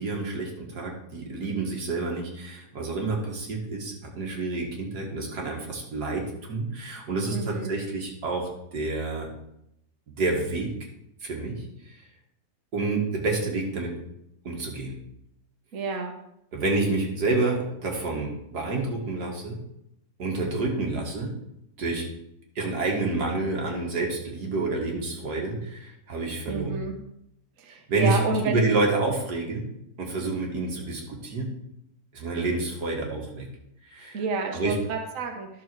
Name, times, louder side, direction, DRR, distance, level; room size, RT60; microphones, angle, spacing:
voice 1, 0.0-9.3 10.1-10.7 11.2-12.1 12.7-14.0 14.4-15.0 16.5-19.6 20.2-21.3 21.8-22.0 22.6-26.9 27.7-29.7 30.0-31.5 32.1-33.5 33.9-34.2 34.5-34.8, right 3 dB, 90° right, 0 dB, 2.3 m, -28 dB
voice 2, 7.3-7.8 15.7-16.1 26.5-26.9 27.6-28.7 34.1-35.5, right 4 dB, 55° right, 3 dB, 1.4 m, -29 dB
11.0 x 6.4 x 4.7 m, 0.79 s
omnidirectional pair, 1.7 m